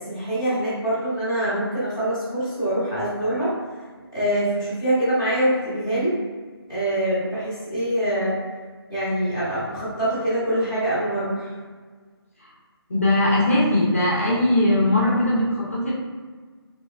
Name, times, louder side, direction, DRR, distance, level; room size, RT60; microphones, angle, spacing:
voice 1, 0.0-3.5 4.1-6.1 6.7-8.3 8.9-11.5, right 1 dB, 10° right, -15 dB, 0.6 m, -24 dB
voice 2, 12.9-15.9, left 1 dB, 30° left, -5 dB, 0.5 m, -20 dB
3.2 x 2.9 x 2.3 m, 1.5 s
hypercardioid pair, 180°, 13 cm